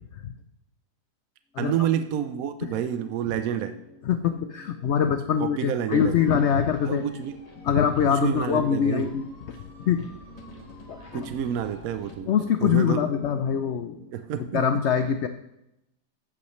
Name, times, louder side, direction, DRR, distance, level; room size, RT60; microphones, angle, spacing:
voice 1, 1.6-3.7 5.4-6.3 6.9-7.4 8.1-9.1 11.1-12.3 12.6-13.0 14.1-14.6, right 10 dB, 70° right, 9 dB, 0.9 m, -28 dB
sound 1, 1.7-14.1, left 2 dB, 5° left, 1.1 m, -49 dB
voice 2, 4.1-7.1 7.6-9.6 9.9-10.1 10.9-11.3 12.3-14.0 14.5-15.3, left 8 dB, 70° left, 9 dB, 0.6 m, -24 dB
sound 2, 5.9-12.2, left 1 dB, 25° left, 1.4 m, -49 dB
14.5 x 8.5 x 3.2 m, 0.86 s
omnidirectional pair, 1.8 m